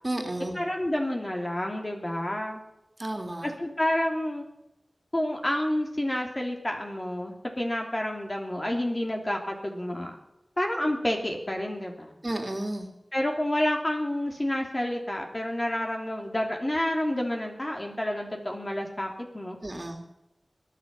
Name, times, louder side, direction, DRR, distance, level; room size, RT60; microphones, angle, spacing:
voice 1, 0.0-0.6 3.0-3.5 12.2-12.9 19.6-20.0, right 1 dB, 35° right, 3 dB, 2.9 m, -32 dB
voice 2, 0.5-2.6 3.4-4.5 5.1-10.2 10.6-12.1 13.1-19.6, left 1 dB, 30° left, 1 dB, 3.2 m, -29 dB
21.5 x 9.4 x 5.7 m, 0.90 s
wide cardioid pair, 50°, 0 cm